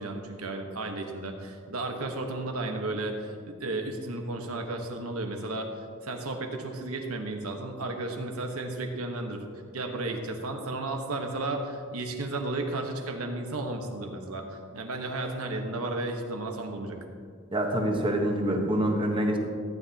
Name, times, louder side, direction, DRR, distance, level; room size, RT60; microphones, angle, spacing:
voice 1, 0.0-5.7 6.0-9.4 9.7-17.0, right 2 dB, 80° right, 3 dB, 1.2 m, -33 dB
voice 2, 17.5-19.4, right 1 dB, 25° right, 2 dB, 1.1 m, -26 dB
14.5 x 9.2 x 2.9 m, 2.1 s
head